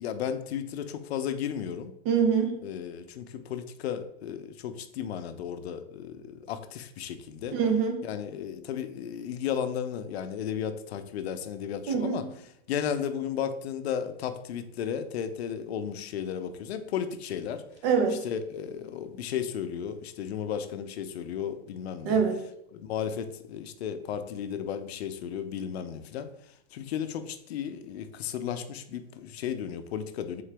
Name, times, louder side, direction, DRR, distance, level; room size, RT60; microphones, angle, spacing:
voice 1, 0.0-1.9 2.6-7.6 8.0-12.2 12.7-17.6 18.2-22.2 22.7-26.3 26.7-30.4, left 8 dB, 80° left, 9 dB, 0.6 m, -34 dB
voice 2, 2.1-2.6 7.5-8.0 11.9-12.2 17.8-18.2 22.0-22.4, right 6 dB, 30° right, 4 dB, 0.6 m, -24 dB
3.8 x 3.7 x 3.3 m, 0.76 s
supercardioid pair, 170°, 31 cm